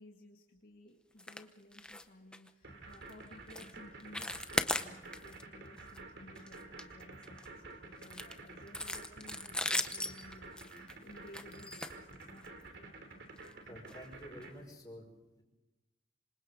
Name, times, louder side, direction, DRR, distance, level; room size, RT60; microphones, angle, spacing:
voice 1, 0.0-13.0, left 1 dB, 55° left, 0 dB, 2.0 m, -57 dB
sound 1, 1.2-1.4 1.7-2.0 2.3-2.5 2.9-3.1 3.5-3.7 4.0-5.4 5.8-6.0 6.4-7.5 8.0-12.6 13.4-13.5 13.9-14.0 14.4-14.5, left 1 dB, 5° left, 0.8 m, -38 dB
sound 2, 2.6-14.5, right 3 dB, 70° right, 3.4 m, -50 dB
voice 2, 13.7-15.1 15.4-15.5, equal, 20° left, 0 dB, 5.9 m, -50 dB
26.5 x 26.5 x 3.9 m, 1.1 s
head